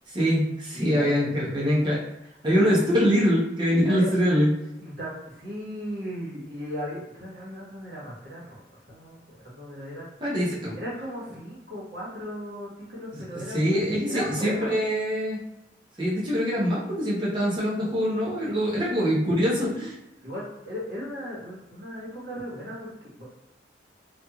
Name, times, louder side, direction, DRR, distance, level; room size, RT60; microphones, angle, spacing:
voice 1, 0.1-2.0 2.4-4.5 10.2-10.8 13.1-13.2 13.5-15.4 16.0-19.9, equal, 25° right, -6 dB, 0.8 m, -24 dB
voice 2, 0.7-1.3 3.8-4.1 4.8-10.1 10.7-14.8 18.4-18.6 20.2-23.3, equal, 70° right, -6 dB, 1.3 m, -36 dB
2.9 x 2.5 x 2.4 m, 0.89 s
head